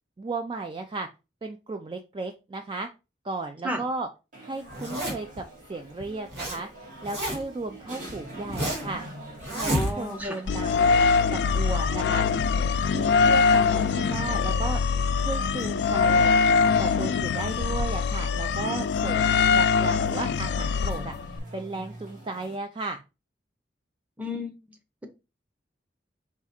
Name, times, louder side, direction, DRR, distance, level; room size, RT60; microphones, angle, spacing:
voice 1, 0.2-1.1 1.4-2.9 3.2-4.1 4.4-6.7 7.0-9.0 9.5-10.9 11.3-12.2 12.9-14.8 15.2-16.3 16.8-23.0, right 3 dB, 30° right, 0.4 m, -35 dB
Crowded Café Ambience, 4.3-22.6, right 1 dB, 50° right, 1.7 m, -46 dB
Zipper (clothing), 4.7-5.4 6.0-6.6 6.8-7.6 8.1-9.0 9.4-10.2, equal, 70° right, 1.9 m, -30 dB
voice 2, 9.7-10.4 24.2-24.5, equal, 10° right, 0.7 m, -32 dB
sound 1, 10.5-21.4, left 5 dB, 75° left, 0.3 m, -23 dB
4.7 x 2.4 x 4.2 m
head